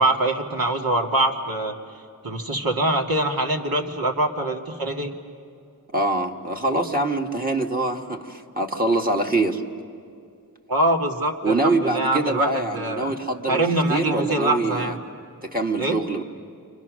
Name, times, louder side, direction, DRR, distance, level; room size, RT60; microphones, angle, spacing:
voice 1, 0.0-1.7 2.2-5.1 10.7-13.1 13.5-15.0 15.8-16.0, right 2 dB, 70° right, 2 dB, 2.1 m, -23 dB
voice 2, 5.9-9.6 11.4-15.0 15.4-16.2, right 2 dB, 25° right, 2 dB, 1.6 m, -24 dB
30.0 x 25.5 x 6.3 m, 2.4 s
wide cardioid pair, 110°, 37 cm